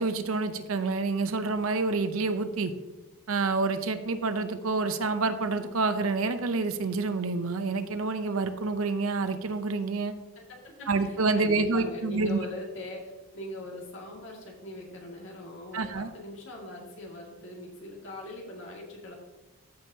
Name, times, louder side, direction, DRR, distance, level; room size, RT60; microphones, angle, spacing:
voice 1, 0.0-2.7 3.3-10.1 10.9-12.4 15.7-16.1, right 3 dB, 70° right, 10 dB, 0.6 m, -28 dB
voice 2, 10.4-19.1, left 1 dB, 60° left, -2 dB, 2.0 m, -41 dB
14.0 x 5.4 x 2.7 m, 1.2 s
head